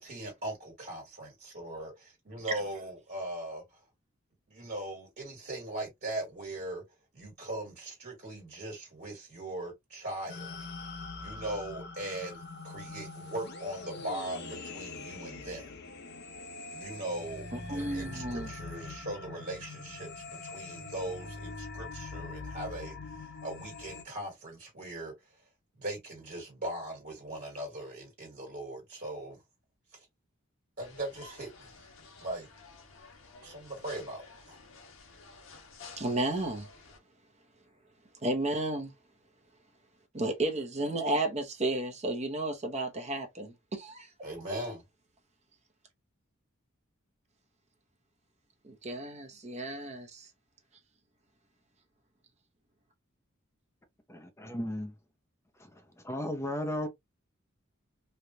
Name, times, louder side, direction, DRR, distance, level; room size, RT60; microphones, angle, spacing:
voice 1, 0.0-3.8 4.5-6.8 7.1-10.7 11.2-15.7 16.7-25.4 25.8-29.4 29.9-30.0 30.8-31.7 32.2-32.5 33.4-34.2 34.5-34.6 44.2-44.8, right 1 dB, 55° right, 1.7 m, -40 dB
sound 1, 10.3-24.0, left 3 dB, 55° left, 0.7 m, -43 dB
voice 2, 17.5-18.5 36.0-36.7 38.2-38.9 40.1-44.1 48.6-50.3, right 2 dB, 35° right, 0.9 m, -32 dB
sound 2, 30.8-37.0, left 4 dB, 85° left, 1.1 m, -53 dB
voice 3, 54.1-54.9 55.6-56.9, left 1 dB, 15° left, 0.6 m, -35 dB
3.3 x 2.4 x 2.7 m
head